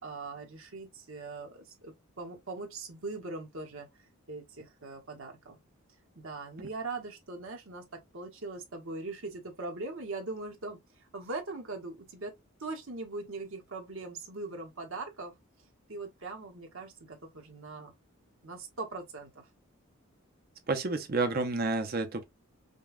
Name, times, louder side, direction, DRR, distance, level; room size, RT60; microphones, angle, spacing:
voice 1, 0.0-3.9 4.3-5.6 6.2-10.8 11.1-12.3 12.6-15.3 15.9-17.9 18.4-19.5, right 3 dB, 65° right, 1.1 m, -41 dB
voice 2, 20.7-22.2, right 3 dB, 45° right, 0.7 m, -30 dB
5.2 x 2.3 x 2.4 m
head